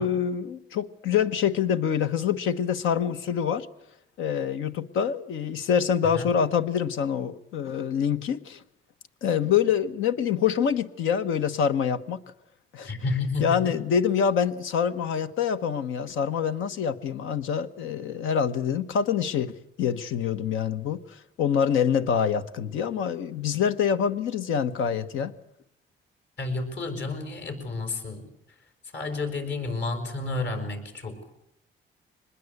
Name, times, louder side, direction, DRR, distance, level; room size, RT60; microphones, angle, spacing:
voice 1, 0.0-3.7 4.2-8.6 9.2-12.2 12.7-12.9 13.4-25.3, left 8 dB, 85° left, 10 dB, 1.3 m, -26 dB
voice 2, 12.8-13.8 26.4-28.3 28.9-31.2, left 3 dB, 60° left, 7 dB, 5.9 m, -31 dB
24.5 x 21.0 x 8.1 m, 0.75 s
cardioid pair, 90°, 20 cm